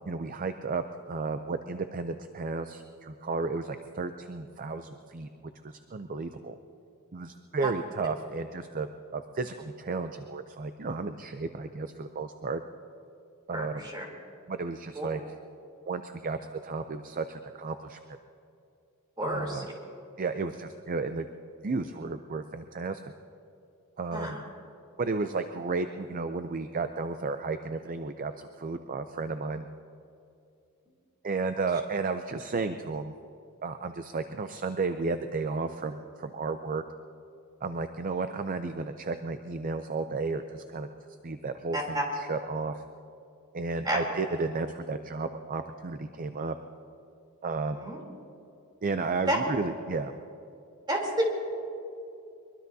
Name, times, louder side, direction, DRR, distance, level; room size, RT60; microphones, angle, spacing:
voice 1, 0.1-5.3 5.6-6.6 7.1-8.9 9.1-12.6 13.5-13.8 14.5-15.2 15.9-18.0 19.2-19.6 20.2-21.3 21.6-23.0 24.0-24.4 25.0-29.7 31.2-33.1 33.6-36.8 37.6-40.9 41.2-42.8 43.5-46.6 47.4-47.8 48.8-50.1, right 4 dB, 40° right, 8 dB, 0.5 m, -33 dB
voice 2, 13.5-14.1 15.0-15.1 19.2-19.7 24.1-24.4 41.7-42.0 43.8-44.0 47.7-48.0 49.3-49.4 50.9-51.3, right 1 dB, 20° right, -1 dB, 3.4 m, -30 dB
23.0 x 22.5 x 2.8 m, 2.6 s
head